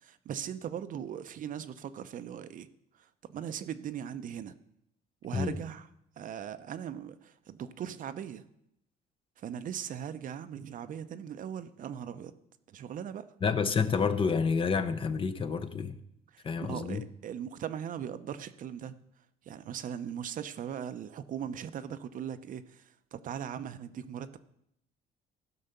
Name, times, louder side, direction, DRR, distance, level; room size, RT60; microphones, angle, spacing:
voice 1, 0.0-2.7 3.3-4.6 5.2-5.9 6.2-8.4 9.4-12.3 12.7-13.2 16.3-18.9 19.5-24.4, right 9 dB, 50° right, 11 dB, 0.7 m, -39 dB
voice 2, 13.4-16.0 16.4-17.0, left 5 dB, 30° left, 11 dB, 0.8 m, -29 dB
15.0 x 5.6 x 6.8 m, 0.79 s
cardioid pair, 110°, 17 cm